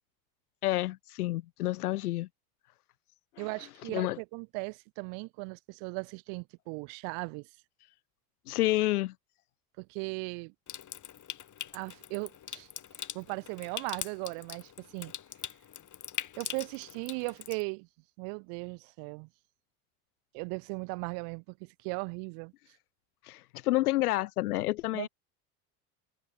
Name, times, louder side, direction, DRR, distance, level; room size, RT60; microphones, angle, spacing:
voice 1, 0.6-2.3 3.9-4.2 8.5-9.1 23.2-25.1, left 17 dB, 85° left, 1.3 m, -29 dB
voice 2, 3.4-7.5 9.8-10.5 11.7-12.7 13.1-15.1 16.4-17.9 18.2-19.3 20.3-22.5 24.9-25.1, right 40 dB or more, 70° right, 4.0 m, -38 dB
Water tap faucet / Sink (filling or washing) / Trickle dribble, 10.7-17.6, left 9 dB, 40° left, 5.8 m, -42 dB
hypercardioid pair, 80°, 44 cm